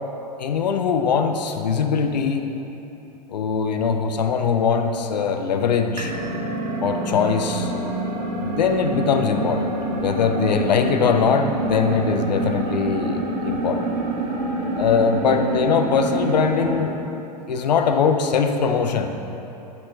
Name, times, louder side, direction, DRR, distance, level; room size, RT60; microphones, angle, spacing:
voice 1, 0.4-2.5 3.3-6.1 6.8-7.7 8.4-9.7 10.0-13.9 14.8-16.9 17.5-19.1, left 6 dB, 80° left, 6 dB, 0.5 m, -21 dB
sound 1, 6.0-16.9, right 1 dB, 75° right, 1.3 m, -27 dB
9.5 x 3.9 x 3.9 m, 3.0 s
hypercardioid pair, 95°, 21 cm